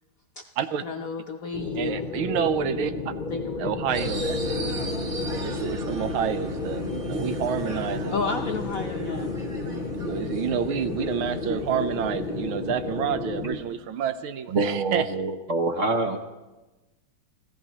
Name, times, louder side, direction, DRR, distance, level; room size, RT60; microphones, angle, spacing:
voice 1, 0.8-2.1 3.3-3.8 8.1-9.3, left 5 dB, 65° left, 3 dB, 0.8 m, -32 dB
sound 1, 1.5-13.6, left 3 dB, 40° left, 0.8 m, -32 dB
voice 2, 1.7-3.1 3.6-4.8 5.4-8.1 9.9-15.1, right 8 dB, 80° right, 11 dB, 1.5 m, -29 dB
sound 2, 3.9-13.8, equal, 35° right, 1.8 m, -37 dB
voice 3, 14.5-16.2, right 3 dB, 55° right, 4 dB, 0.8 m, -25 dB
26.0 x 16.0 x 2.9 m, 1.1 s
omnidirectional pair, 2.3 m